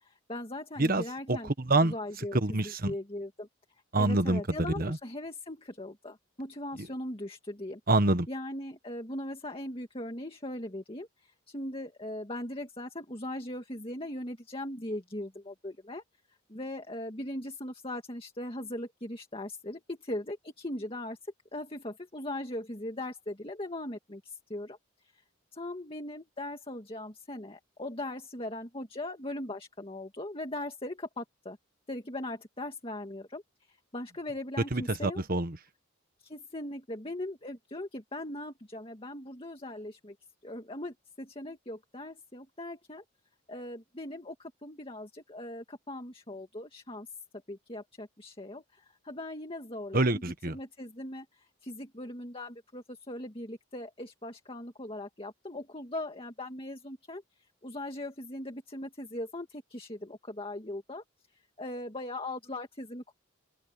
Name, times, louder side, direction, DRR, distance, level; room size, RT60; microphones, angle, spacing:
voice 1, 0.0-1.5 1.8-3.5 4.0-7.8 8.3-16.0 16.5-21.2 21.5-24.8 25.5-31.6 31.9-33.4 33.7-35.2 36.2-40.2 40.4-43.0 43.5-47.1 47.5-57.2 57.6-61.0 61.6-63.1, left 1 dB, 25° left, 2.1 m, -39 dB
voice 2, 0.8-1.9 2.3-2.9 3.9-5.0 6.8-6.9 7.9-8.3 34.7-35.6 49.9-50.5, right 2 dB, 45° right, 1.4 m, -27 dB
open air
head